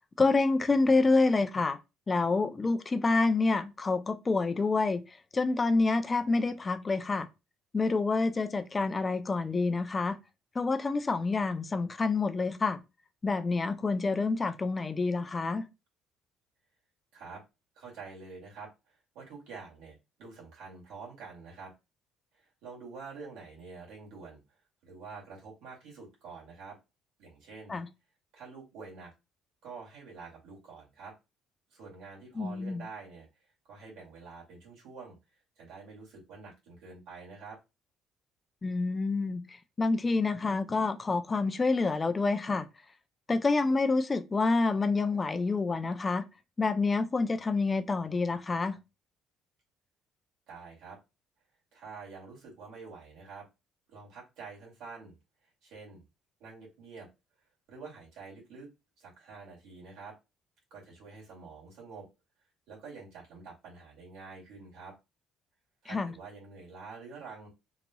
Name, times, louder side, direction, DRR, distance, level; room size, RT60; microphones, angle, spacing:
voice 1, 0.2-1.8 2.1-5.0 5.3-7.3 7.7-10.2 10.6-12.8 13.2-15.6 27.7-27.9 32.4-32.8 38.6-39.4 39.8-42.7 43.3-46.2 46.6-48.8 65.9-66.1, left 3 dB, 20° left, 0.4 m, -27 dB
voice 2, 17.8-21.7 22.3-24.4 24.8-26.8 27.2-27.8 28.3-29.1 29.6-31.2 31.7-33.3 33.6-35.2 35.6-37.6 50.5-51.0 51.7-53.5 53.9-55.2 55.6-56.0 56.4-57.1 57.7-58.7 59.0-60.2 60.7-62.1 62.7-64.9 65.8-67.5, right 4 dB, 85° right, 2.2 m, -47 dB
4.0 x 2.9 x 2.3 m
cardioid pair, 140°, 0 cm